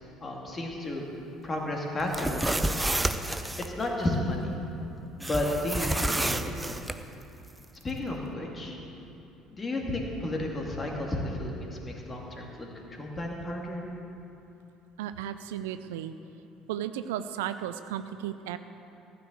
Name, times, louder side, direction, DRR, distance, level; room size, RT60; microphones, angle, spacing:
voice 1, 0.2-1.0 1.4-2.9 3.3-4.5 5.2-6.7 7.8-8.8 9.5-13.8, left 1 dB, 25° left, -1 dB, 2.5 m, -33 dB
sound 1, 2.0-3.7 5.2-7.0, right 1 dB, 10° right, 0.6 m, -29 dB
voice 2, 15.0-16.1 16.7-18.6, right 10 dB, 70° right, 11 dB, 0.4 m, -34 dB
14.5 x 6.8 x 7.9 m, 2.9 s
figure-of-eight pair, 55°, 0 cm